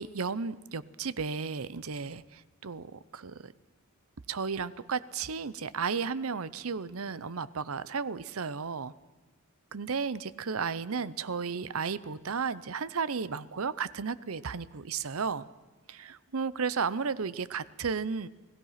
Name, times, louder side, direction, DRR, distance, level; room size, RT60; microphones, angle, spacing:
voice 1, 0.0-3.5 4.3-8.9 9.7-15.5 15.9-18.3, right 5 dB, 70° right, 17 dB, 0.7 m, -34 dB
29.5 x 18.0 x 5.8 m, 1.2 s
head